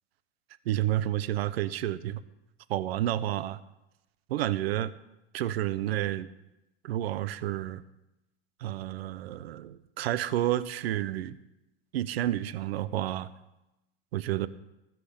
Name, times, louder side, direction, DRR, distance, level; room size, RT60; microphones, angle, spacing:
voice 1, 0.7-2.2 2.7-3.6 4.3-4.9 5.3-6.3 6.8-7.8 8.6-11.4 11.9-13.3 14.1-14.5, right 13 dB, 80° right, 15 dB, 0.8 m, -30 dB
18.5 x 6.2 x 8.6 m, 0.94 s
supercardioid pair, 145°, 30 cm